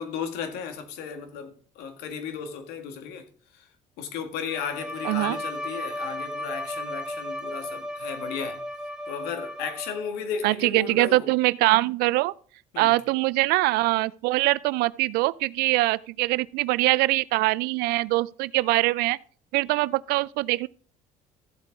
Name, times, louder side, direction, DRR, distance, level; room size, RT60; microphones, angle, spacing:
voice 1, 0.0-3.7 4.0-8.6 9.1-11.3 12.7-12.9, left 7 dB, 75° left, 1.9 m, -35 dB
Bowed string instrument, 4.5-10.3, left 1 dB, 5° right, 3.2 m, -35 dB
voice 2, 5.0-5.4 10.4-12.3 12.8-19.2 19.5-20.7, right 20 dB, 70° right, 0.4 m, -23 dB
14.5 x 8.1 x 3.6 m
hypercardioid pair, 65°, 17 cm